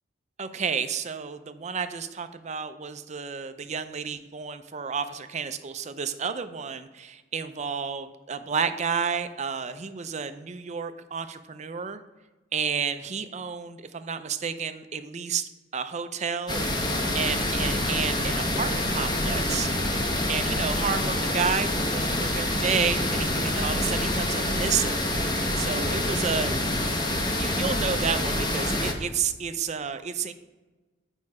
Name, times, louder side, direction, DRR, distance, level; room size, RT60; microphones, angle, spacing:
voice 1, 0.4-12.0 12.5-16.6 17.1-19.7 20.3-25.0 25.6-26.6 27.4-30.3, right 6 dB, 40° right, 10 dB, 0.5 m, -31 dB
sound 1, 16.5-28.9, left 1 dB, 25° left, 0.9 m, -26 dB
8.5 x 5.4 x 4.8 m, 1.2 s
head